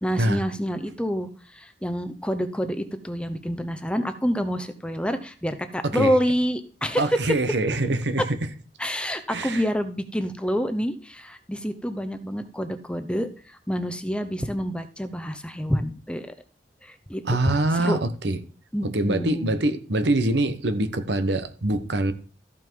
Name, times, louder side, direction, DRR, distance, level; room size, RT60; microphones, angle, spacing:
voice 1, 0.0-7.2 8.8-16.3 16.8-18.0 18.7-19.6, equal, 5° left, 0.8 m, -28 dB
voice 2, 5.8-6.1 7.0-8.2 9.3-9.6 17.3-18.4 18.8-22.1, right 2 dB, 75° right, 1.1 m, -24 dB
13.5 x 5.9 x 4.6 m
head